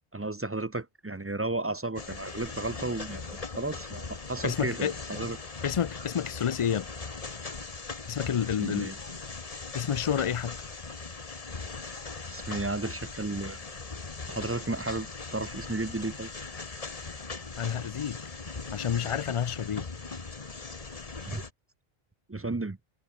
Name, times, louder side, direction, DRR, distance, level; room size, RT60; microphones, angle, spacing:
voice 1, 0.1-5.4 8.6-9.0 12.3-13.6 14.3-16.3 21.3-21.5 22.3-22.8, right 2 dB, 20° right, 0.4 m, -33 dB
sound 1, 2.0-21.5, left 4 dB, 35° left, 1.4 m, -40 dB
voice 2, 4.4-4.9 5.6-6.9 8.1-8.9 9.7-10.6 17.6-18.2 18.7-19.8, left 8 dB, 55° left, 0.3 m, -29 dB
omnidirectional pair, 1.0 m